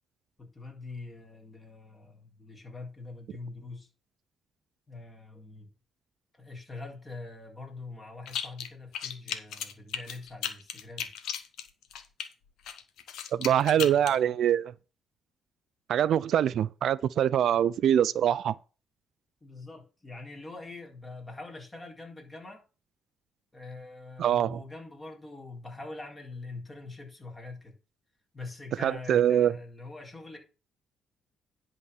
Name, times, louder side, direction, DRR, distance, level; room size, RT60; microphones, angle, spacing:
voice 1, 0.4-3.9 4.9-5.7 6.3-11.1 13.7-14.4 17.5-17.7 19.4-22.6 23.5-27.8 28.3-30.4, left 3 dB, 20° left, 3.7 m, -44 dB
sound 1, 8.3-8.7 8.9-12.3 12.7-14.2, left 9 dB, 80° left, 1.3 m, -35 dB
voice 2, 13.3-14.7 15.9-18.5 24.2-24.6 28.8-29.5, right 10 dB, 70° right, 0.4 m, -24 dB
10.5 x 4.1 x 6.9 m
cardioid pair, 90°, 0 cm